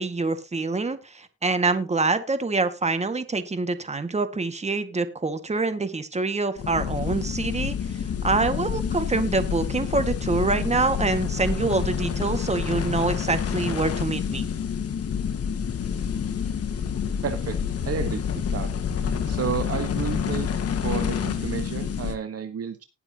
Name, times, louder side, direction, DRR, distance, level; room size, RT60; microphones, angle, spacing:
voice 1, 0.0-7.8 8.2-14.5, right 3 dB, 20° right, 9 dB, 1.9 m, -25 dB
sound 1, 6.6-22.2, left 7 dB, 55° left, 1.8 m, -28 dB
voice 2, 17.2-17.6 17.8-18.7 19.2-22.8, right 7 dB, 50° right, 9 dB, 1.4 m, -31 dB
19.5 x 7.1 x 2.9 m, 0.26 s
cardioid pair, 90°, 30 cm